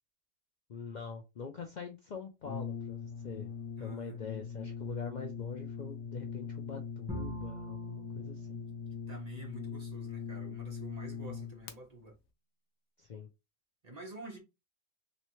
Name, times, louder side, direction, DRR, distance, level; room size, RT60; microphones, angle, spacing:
voice 1, 0.7-3.5 3.8-8.6 13.0-13.3, left 5 dB, 50° left, 0.6 m, -44 dB
Brass instrument, 2.4-11.8, left 6 dB, 85° left, 1.0 m, -41 dB
voice 2, 3.8-4.2 9.1-12.2 13.8-14.4, right 2 dB, 35° right, 1.1 m, -48 dB
Bowed string instrument, 7.1-10.2, right 1 dB, 10° right, 1.4 m, -45 dB
3.2 x 3.1 x 3.1 m
omnidirectional pair, 1.2 m